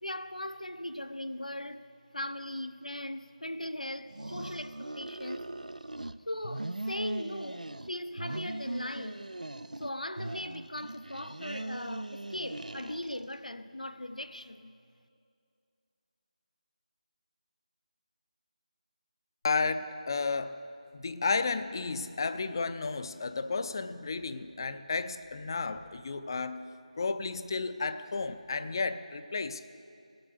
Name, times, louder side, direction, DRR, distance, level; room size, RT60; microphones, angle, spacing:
voice 1, 0.0-1.9 2.1-5.5 6.3-9.3 9.8-14.7, left 1 dB, 85° left, 0.7 m, -39 dB
sound 1, 4.1-6.1 6.4-7.9 8.2-9.9 10.2-13.4, right 1 dB, 85° right, 0.4 m, -40 dB
voice 2, 19.4-20.6 20.9-26.7 27.0-29.7, left 4 dB, 35° left, 0.5 m, -32 dB
18.0 x 7.9 x 6.6 m
figure-of-eight pair, 160°, 4 cm